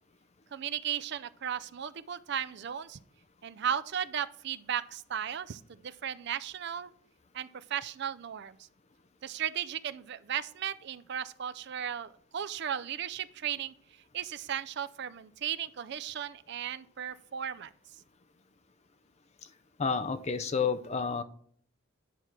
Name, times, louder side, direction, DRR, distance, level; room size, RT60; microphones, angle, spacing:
voice 1, 0.5-3.0 3.4-6.9 7.3-8.6 9.2-13.7 14.1-17.7, right 9 dB, 50° right, 14 dB, 0.4 m, -36 dB
voice 2, 19.8-21.2, left 5 dB, 30° left, 11 dB, 0.5 m, -30 dB
10.0 x 4.7 x 5.8 m, 0.62 s
head